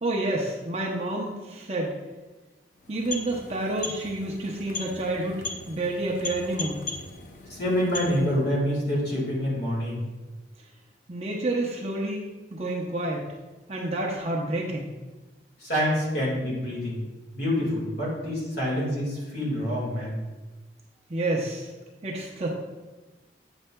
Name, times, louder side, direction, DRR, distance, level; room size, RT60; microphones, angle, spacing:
voice 1, 0.0-1.9 2.9-6.8 11.1-13.3 13.7-14.9 21.1-21.7 22.0-22.5, right 2 dB, 35° right, -2 dB, 0.6 m, -29 dB
sound 1, 2.7-8.5, left 3 dB, 45° left, 0.5 m, -38 dB
voice 2, 7.5-10.0 15.6-17.0 17.3-20.2, equal, 65° left, -4 dB, 1.7 m, -27 dB
7.9 x 5.4 x 2.2 m, 1.2 s
head